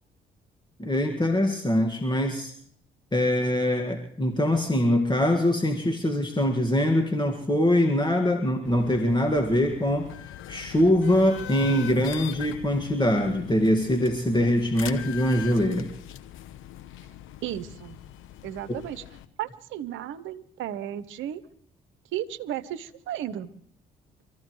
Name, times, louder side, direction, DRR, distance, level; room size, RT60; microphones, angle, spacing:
voice 1, 0.8-2.5 3.1-15.9 18.7-18.8, left 1 dB, 20° left, 4 dB, 1.9 m, -23 dB
sound 1, 8.6-19.2, left 12 dB, 70° left, 1.0 m, -41 dB
voice 2, 17.4-18.0 18.4-19.0 19.4-21.4 22.1-23.5, right 11 dB, 70° right, 13 dB, 0.9 m, -34 dB
25.5 x 14.0 x 3.2 m, 0.63 s
hypercardioid pair, 50°, 21 cm